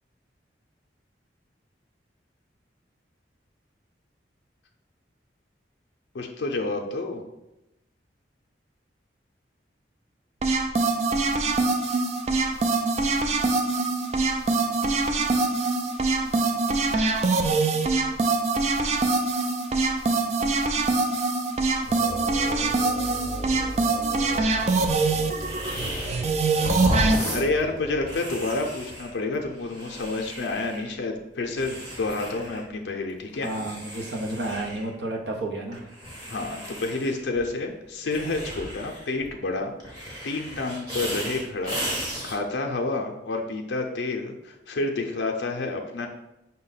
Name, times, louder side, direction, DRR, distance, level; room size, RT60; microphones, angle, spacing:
voice 1, 6.1-7.2 26.9-27.0 27.3-33.5 36.3-39.9 40.2-41.8 42.2-46.1, left 3 dB, 75° left, 2 dB, 0.5 m, -29 dB
sound 1, 10.4-27.2, right 3 dB, 35° right, 0.3 m, -24 dB
sound 2, 21.9-28.2, equal, 20° left, 0.6 m, -38 dB
sound 3, 25.3-26.3 26.6-30.9 31.5-32.6 33.0-34.9 35.7-37.5 38.1-39.3 39.8-42.4, equal, 20° right, 1.0 m, -34 dB
voice 2, 33.4-35.9, right 2 dB, 70° right, 1 dB, 0.7 m, -31 dB
5.5 x 2.1 x 4.0 m, 0.92 s
head